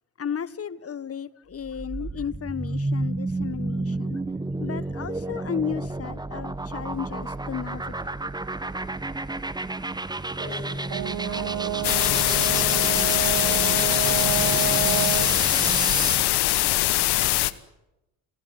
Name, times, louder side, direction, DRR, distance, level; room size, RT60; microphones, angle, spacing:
voice 1, 0.2-4.2 4.6-8.1, left 7 dB, 30° left, 1.4 m, -34 dB
sound 1, 1.5-16.3, right 2 dB, 10° right, 1.1 m, -31 dB
voice 2, 10.3-17.2, right 1 dB, 80° right, 7.8 m, -42 dB
Brass instrument, 10.9-15.4, right 13 dB, 55° right, 1.6 m, -29 dB
sound 2, 11.8-17.5, left 17 dB, 60° left, 1.3 m, -22 dB
30.0 x 16.5 x 9.5 m
hypercardioid pair, 50°, 44 cm